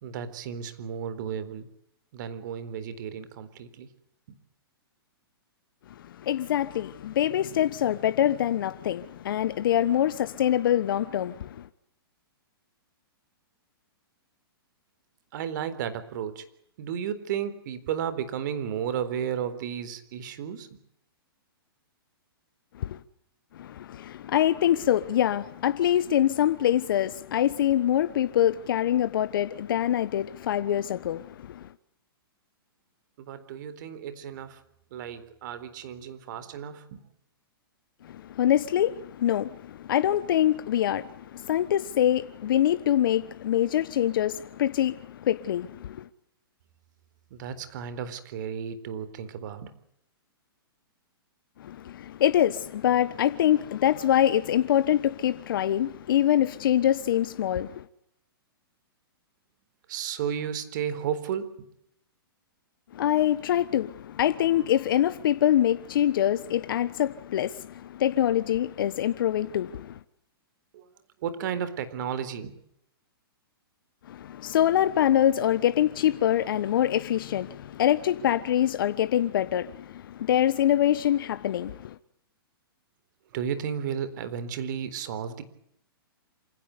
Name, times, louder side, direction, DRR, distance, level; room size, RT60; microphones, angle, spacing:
voice 1, 0.0-1.7 2.1-3.9 15.3-16.5 16.8-20.7 33.2-34.6 34.9-37.0 47.3-49.7 59.9-61.7 70.7-70.9 71.2-72.6 83.3-85.4, right 8 dB, 50° right, 4.0 m, -33 dB
voice 2, 5.9-11.7 22.7-23.0 23.5-31.7 38.0-46.1 51.6-57.9 62.9-70.0 74.0-82.0, left 11 dB, 60° left, 1.2 m, -25 dB
27.5 x 17.0 x 9.6 m
hypercardioid pair, 145°, 13 cm